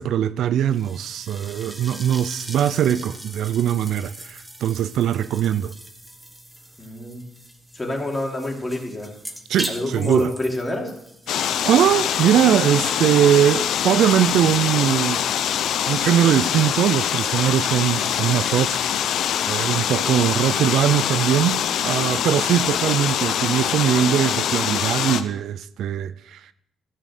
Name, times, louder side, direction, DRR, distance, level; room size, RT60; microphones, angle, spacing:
voice 1, 0.0-5.7 9.5-10.3 11.3-15.2 15.9-18.8 19.5-26.5, right 10 dB, 75° right, 0.4 m, -21 dB
sound 1, 0.7-14.9, right 1 dB, 10° right, 1.5 m, -40 dB
voice 2, 6.8-7.3 7.7-9.1 9.7-10.9, left 1 dB, 15° left, 3.1 m, -27 dB
sound 2, 11.3-25.2, left 9 dB, 75° left, 0.7 m, -24 dB
14.0 x 6.3 x 6.6 m
cardioid pair, 90°, 0 cm